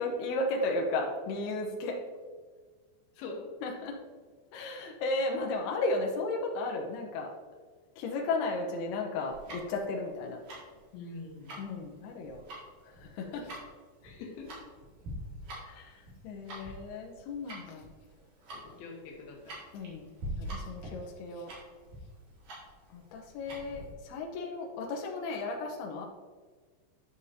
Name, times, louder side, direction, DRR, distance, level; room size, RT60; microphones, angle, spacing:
voice 1, 0.0-2.0 3.6-4.0 4.5-7.3 8.0-10.4 11.6-12.4 12.8-13.6 15.7-17.9 19.7-21.5 22.9-26.1, left 2 dB, 90° left, 0 dB, 2.2 m, -34 dB
voice 2, 3.2-3.6 10.9-11.5 13.2-13.5 14.0-14.5 16.5-16.7 18.5-19.6, left 3 dB, 70° left, 0 dB, 2.5 m, -44 dB
Tick-tock, 9.3-23.9, right 1 dB, 50° right, 2.8 m, -45 dB
11.5 x 6.6 x 2.8 m, 1.5 s
omnidirectional pair, 5.8 m